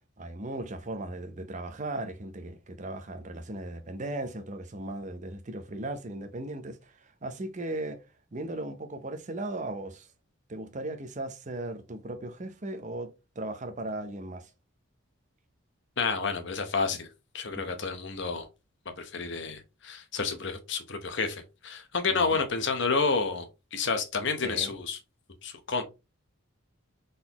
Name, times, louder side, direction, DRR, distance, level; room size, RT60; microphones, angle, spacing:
voice 1, 0.2-8.0 8.3-10.1 10.5-14.5 22.1-22.2 24.4-24.7, right 2 dB, 35° right, 0.6 m, -37 dB
voice 2, 16.0-17.1 17.3-18.5 19.0-25.0 25.4-25.8, left 4 dB, 55° left, 0.9 m, -30 dB
4.0 x 3.9 x 2.9 m
head